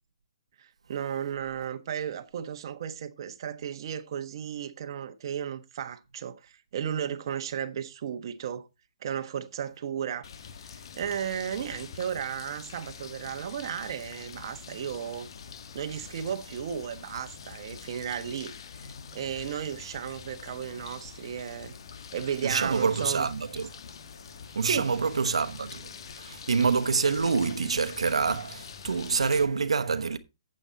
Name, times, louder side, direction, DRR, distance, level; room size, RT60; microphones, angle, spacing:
voice 1, 0.6-8.7 9.0-10.3 10.7-15.3 15.7-21.7 22.1-23.3 24.6-24.9, right 8 dB, 50° right, 1.3 m, -34 dB
sound 1, 10.2-29.4, left 6 dB, 55° left, 1.4 m, -45 dB
voice 2, 22.4-23.7 24.5-30.2, right 5 dB, 85° right, 1.1 m, -27 dB
8.9 x 8.1 x 4.1 m
hypercardioid pair, 150°, 3 cm